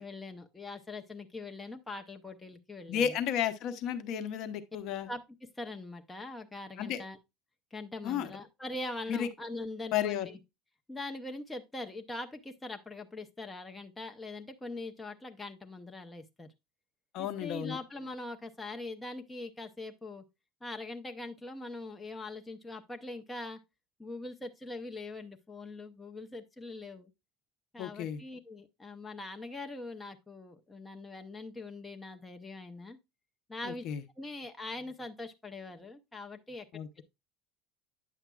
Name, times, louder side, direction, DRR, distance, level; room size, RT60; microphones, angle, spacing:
voice 1, 0.0-3.2 5.1-7.2 7.7-10.4 10.9-16.5 17.2-20.2 20.6-23.6 24.0-27.1 27.7-33.0 33.5-33.8 34.2-36.7 37.0-37.1, left 2 dB, 10° left, 0.7 m, -42 dB
voice 2, 2.9-5.1 6.8-7.0 8.0-8.3 9.1-9.3 9.9-10.3 17.1-17.8 27.8-28.2 33.6-34.0 36.7-36.9, left 9 dB, 50° left, 0.8 m, -33 dB
9.1 x 7.2 x 2.3 m
cardioid pair, 160°, 0 cm